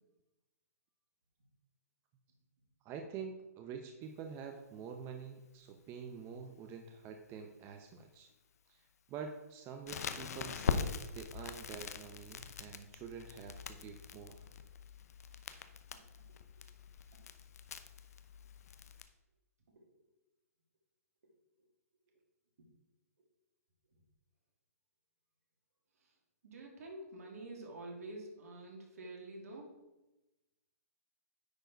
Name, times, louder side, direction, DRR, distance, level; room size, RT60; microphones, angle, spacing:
voice 1, 2.8-8.3 8.7-14.4, right 6 dB, 30° right, 4 dB, 0.7 m, -47 dB
Crackle, 9.9-19.0, left 6 dB, 70° left, 0.7 m, -42 dB
voice 2, 26.4-29.8, right 2 dB, 70° right, 0 dB, 2.5 m, -48 dB
9.6 x 4.5 x 4.6 m, 1.0 s
hypercardioid pair, 135°, 9 cm